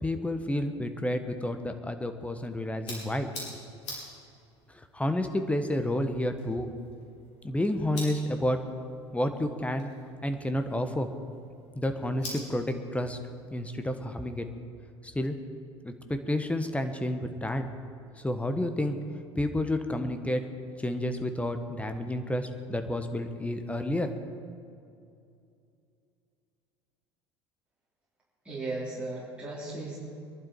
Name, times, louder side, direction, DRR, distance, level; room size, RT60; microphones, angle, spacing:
voice 1, 0.0-3.3 4.7-6.7 7.4-8.6 9.1-9.9 10.2-11.1 11.7-13.2 13.5-14.5 15.0-15.3 15.8-17.7 18.2-19.0 19.4-20.4 20.8-24.1, left 1 dB, 10° left, 7 dB, 1.3 m, -30 dB
sound 1, 2.2-14.5, left 1 dB, 75° left, 4.7 m, -47 dB
voice 2, 28.4-30.0, right 2 dB, 10° right, -8 dB, 3.9 m, -36 dB
22.5 x 11.5 x 4.8 m, 2.5 s
figure-of-eight pair, 70°, 15 cm